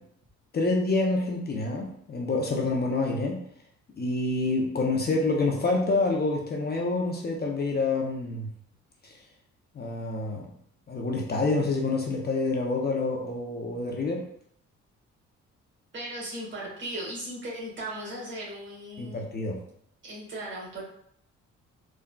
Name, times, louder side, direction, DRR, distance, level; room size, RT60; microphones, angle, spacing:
voice 1, 0.5-3.4 4.0-8.5 9.0-9.1 9.8-10.5 10.9-14.2 19.0-19.6, left 3 dB, 35° left, 0 dB, 0.5 m, -27 dB
voice 2, 15.9-19.3 20.0-20.8, right 1 dB, 40° right, -5 dB, 1.4 m, -37 dB
3.7 x 2.2 x 2.2 m, 0.69 s
cardioid pair, 90°, 30 cm